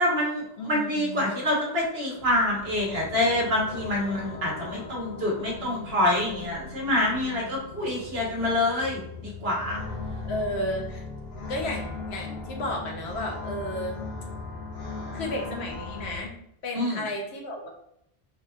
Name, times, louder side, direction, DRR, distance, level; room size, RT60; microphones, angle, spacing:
voice 1, 0.0-9.8 16.7-17.0, left 1 dB, 70° right, -3 dB, 1.4 m, -26 dB
voice 2, 0.6-1.3 10.2-11.0 11.5-14.0 15.1-16.3 16.6-17.7, left 1 dB, 90° left, 1 dB, 1.1 m, -33 dB
sound 1, 2.2-16.2, left 3 dB, 70° left, 1.2 m, -38 dB
4.6 x 2.8 x 2.4 m, 0.74 s
omnidirectional pair, 1.1 m